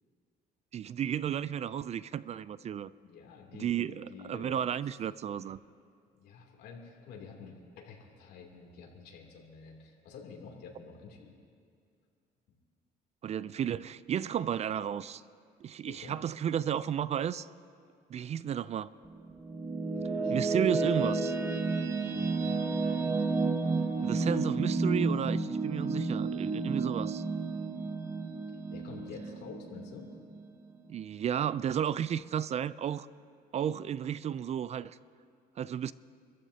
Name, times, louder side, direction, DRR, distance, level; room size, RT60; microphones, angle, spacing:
voice 1, 0.7-2.9 3.6-5.6 13.2-15.2 15.6-17.5 18.1-18.9 20.3-21.3 24.0-27.2 30.9-33.1 33.5-35.0 35.6-35.9, right 9 dB, 40° right, 17 dB, 0.4 m, -33 dB
voice 2, 3.0-4.6 6.2-11.3 15.8-16.2 19.9-20.7 22.1-22.8 28.5-30.1, left 5 dB, 75° left, 0 dB, 3.0 m, -49 dB
sound 1, 19.1-30.4, right 3 dB, 15° right, 1.3 m, -31 dB
27.5 x 14.5 x 2.8 m, 2.3 s
cardioid pair, 110°, 17 cm